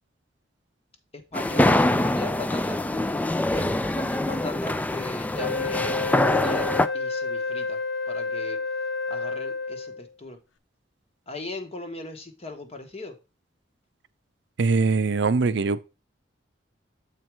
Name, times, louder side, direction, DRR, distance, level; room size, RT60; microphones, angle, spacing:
voice 1, 1.1-2.8 3.5-7.8 8.1-8.6 9.1-10.4 11.3-13.2, left 2 dB, 35° left, 1.2 m, -39 dB
sound 1, 1.3-6.9, left 1 dB, 10° left, 0.3 m, -24 dB
Wind instrument woodwind instrument, 5.3-10.1, left 4 dB, 85° left, 0.6 m, -30 dB
voice 2, 14.6-15.8, right 4 dB, 70° right, 0.6 m, -22 dB
7.5 x 4.4 x 4.7 m
head